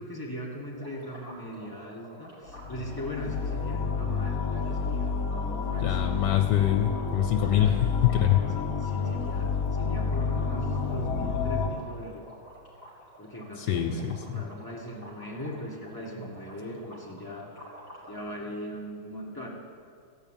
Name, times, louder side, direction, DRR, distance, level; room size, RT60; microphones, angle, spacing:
voice 1, 0.0-6.2 7.6-12.2 13.2-17.5 18.1-19.5, equal, 10° left, -3 dB, 1.7 m, -40 dB
sound 1, 0.8-18.2, right 1 dB, 40° right, 3.8 m, -50 dB
sound 2, 2.5-11.7, left 5 dB, 55° left, 1.2 m, -30 dB
voice 2, 5.8-8.4 13.6-14.4, left 11 dB, 70° left, 5 dB, 1.2 m, -24 dB
15.5 x 5.5 x 9.1 m, 2.2 s
omnidirectional pair, 2.2 m